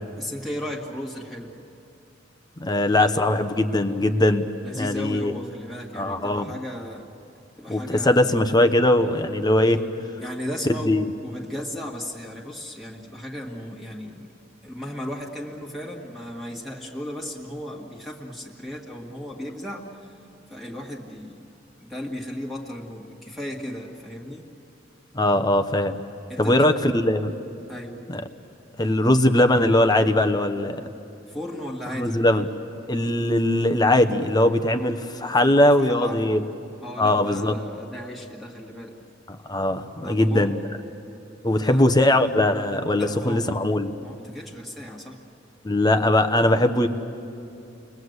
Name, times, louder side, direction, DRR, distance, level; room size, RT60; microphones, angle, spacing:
voice 1, 0.2-1.5 4.6-7.1 7.6-8.4 10.2-14.4 14.6-20.2 20.5-21.5 21.8-24.5 26.3-26.7 27.7-28.0 28.3-28.4 31.2-32.2 35.4-36.4 36.8-38.9 40.0-40.5 41.6-41.9 43.0-45.2, equal, ahead, -3 dB, 1.9 m, -35 dB
voice 2, 2.6-4.5 4.8-5.3 5.9-6.5 7.7-9.8 10.9-11.0 25.1-26.0 26.4-27.3 28.1-28.2 28.8-30.8 31.9-32.5 32.9-36.4 37.0-37.5 39.3-40.6 41.4-43.9 45.6-46.9, left 1 dB, 20° left, 8 dB, 1.0 m, -20 dB
30.0 x 21.5 x 8.1 m, 2.8 s
head